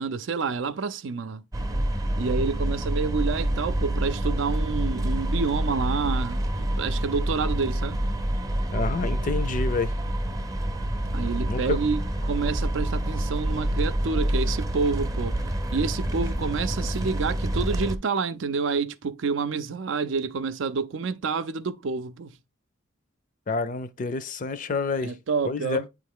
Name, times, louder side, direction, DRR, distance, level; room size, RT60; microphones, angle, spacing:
voice 1, 0.0-1.4 2.2-8.0 11.1-15.4 15.7-22.4 25.0-25.8, right 5 dB, 75° right, 0.5 m, -28 dB
sound 1, 1.5-18.0, right 1 dB, 20° right, 0.5 m, -27 dB
voice 2, 8.7-9.9 11.5-11.8 23.5-25.1 25.4-25.9, left 4 dB, 40° left, 0.5 m, -28 dB
8.2 x 3.2 x 3.7 m
head